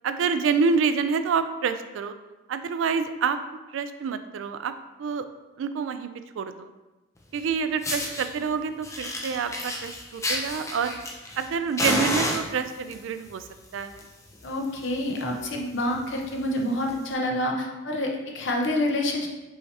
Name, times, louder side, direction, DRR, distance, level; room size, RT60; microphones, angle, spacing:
voice 1, 0.0-2.1 2.5-3.4 3.7-4.7 5.0-5.3 5.6-6.1 6.4-6.7 7.3-11.0 11.4-13.4 13.7-14.0, right 5 dB, 80° right, 10 dB, 0.3 m, -27 dB
Fire, 7.3-7.4 7.8-8.3 8.8-11.5 11.8-12.9 13.7-14.0 14.3-14.4 14.8-14.9 15.2-15.4 15.9-16.0 17.0-17.1, left 1 dB, 15° left, 0.6 m, -29 dB
voice 2, 14.4-19.3, left 1 dB, 65° left, 1 dB, 0.7 m, -27 dB
5.5 x 2.8 x 3.2 m, 1.1 s
head